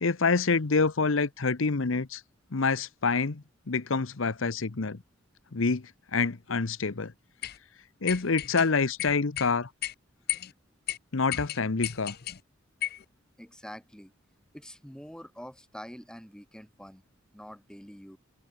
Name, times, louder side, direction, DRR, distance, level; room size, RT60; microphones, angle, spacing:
voice 1, 0.0-2.2 2.5-5.0 5.5-5.8 6.1-7.1 8.0-9.7 11.1-12.2, left 4 dB, 80° left, 0.9 m, -27 dB
sound 1, 7.4-7.6 8.1-8.7 9.0-9.5 9.8-9.9 10.3-10.5 10.9-11.0 11.3-12.4 12.8-13.0, left 13 dB, 50° left, 0.7 m, -33 dB
voice 2, 13.4-14.1 14.5-17.0 17.3-18.2, equal, 5° left, 3.7 m, -45 dB
open air
head